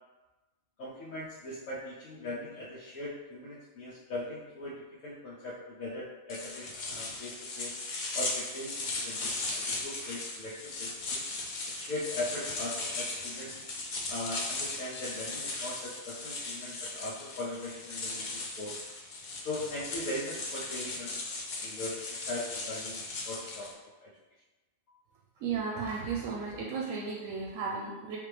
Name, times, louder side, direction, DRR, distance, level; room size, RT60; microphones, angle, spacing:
voice 1, 0.8-7.7 8.1-11.2 11.7-13.6 14.1-18.2 18.6-18.7 19.4-21.2 21.6-22.0 22.3-23.0 23.3-23.7 24.0-24.1, left 1 dB, 85° left, -7 dB, 1.1 m, -39 dB
sound 1, 6.3-23.7, left 3 dB, 50° left, 0.5 m, -37 dB
voice 2, 25.4-28.2, right 5 dB, 80° right, -2 dB, 1.0 m, -34 dB
3.4 x 3.4 x 3.3 m, 1.1 s
omnidirectional pair, 1.4 m